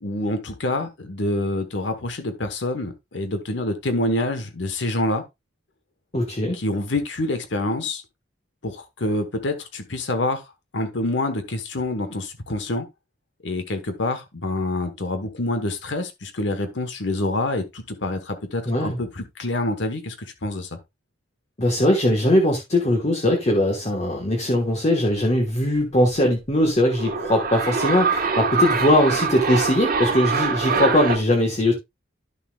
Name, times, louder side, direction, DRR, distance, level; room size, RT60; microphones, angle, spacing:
voice 1, 0.0-5.2 6.5-8.0 8.6-10.4 10.7-12.9 13.4-20.7, left 2 dB, 65° left, 1.2 m, -26 dB
voice 2, 6.1-6.6 18.7-19.0 21.6-31.7, left 1 dB, 35° left, 1.3 m, -20 dB
sound 1, 26.8-31.2, right 4 dB, 45° right, 1.5 m, -24 dB
11.0 x 6.9 x 2.3 m
head